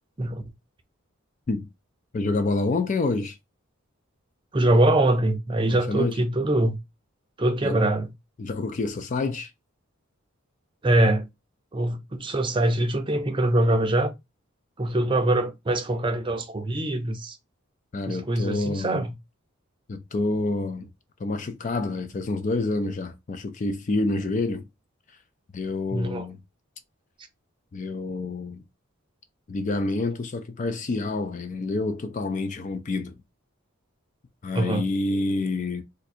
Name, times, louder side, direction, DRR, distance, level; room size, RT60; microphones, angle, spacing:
voice 1, 2.1-3.4 5.7-6.2 7.6-7.8 8.4-9.5 17.9-18.9 19.9-20.9 21.2-24.6 25.5-26.4 27.7-28.6 29.5-33.2 34.4-35.8, left 3 dB, 35° left, 0.3 m, -28 dB
voice 2, 4.5-6.8 7.4-8.1 10.8-11.3 11.7-14.1 14.8-17.4 18.1-19.1 25.9-26.3 34.5-34.8, right 1 dB, 25° right, 0.5 m, -23 dB
2.6 x 2.5 x 4.2 m
head